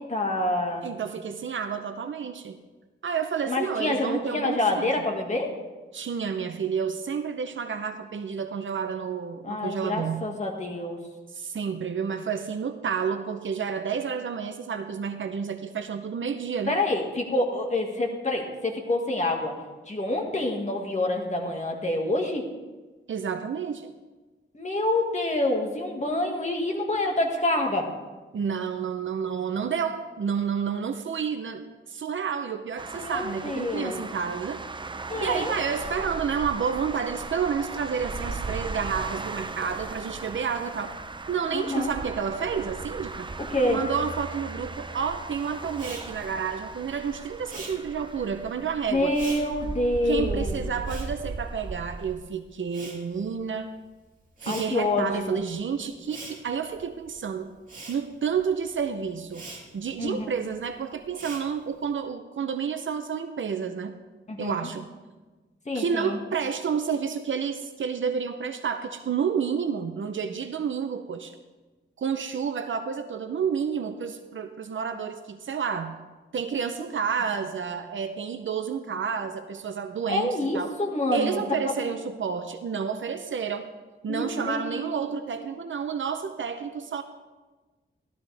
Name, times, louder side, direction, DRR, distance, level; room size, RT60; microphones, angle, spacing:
voice 1, 0.0-0.9 3.5-5.5 9.4-11.0 16.7-19.5 19.9-22.4 24.5-27.9 33.0-33.9 35.1-35.5 41.5-41.9 43.4-43.8 48.9-50.7 54.5-55.4 60.0-60.3 64.3-64.7 65.7-66.2 80.1-81.9 84.1-85.2, left 2 dB, 35° left, 1 dB, 1.9 m, -27 dB
voice 2, 0.8-2.6 3.0-4.9 5.9-10.3 11.3-16.8 23.1-23.9 28.3-34.6 35.2-41.0 41.3-43.3 43.7-49.1 50.1-53.7 54.4-57.5 57.9-59.4 59.7-63.9 64.4-64.9 65.7-71.4 72.0-76.0 76.3-80.8 81.1-83.6 84.0-87.0, right 6 dB, 70° right, 8 dB, 0.7 m, -30 dB
sound 1, 32.8-52.2, right 3 dB, 25° right, 0.5 m, -37 dB
Respiratory sounds, 45.7-52.2 52.4-61.9, right 2 dB, 40° right, 2.9 m, -45 dB
14.5 x 12.5 x 3.4 m, 1.3 s
wide cardioid pair, 110°, 21 cm